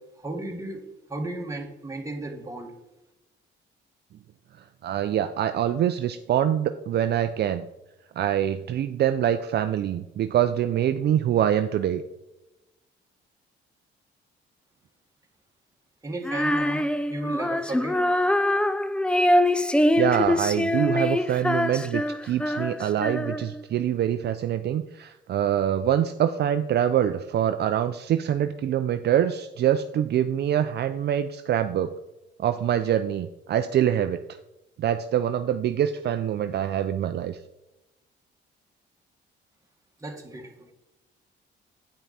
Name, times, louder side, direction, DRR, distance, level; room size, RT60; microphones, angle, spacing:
voice 1, 0.2-0.8 1.1-2.7 16.0-18.0 40.0-40.7, right 2 dB, 15° right, 2 dB, 1.6 m, -34 dB
voice 2, 4.8-7.7 8.2-12.0 19.9-31.9 32.4-34.4 34.8-37.4, right 10 dB, 55° right, 9 dB, 0.4 m, -25 dB
Female singing, 16.2-23.6, left 1 dB, 5° left, 0.3 m, -24 dB
8.9 x 5.8 x 4.1 m, 0.96 s
cardioid pair, 90°, 20 cm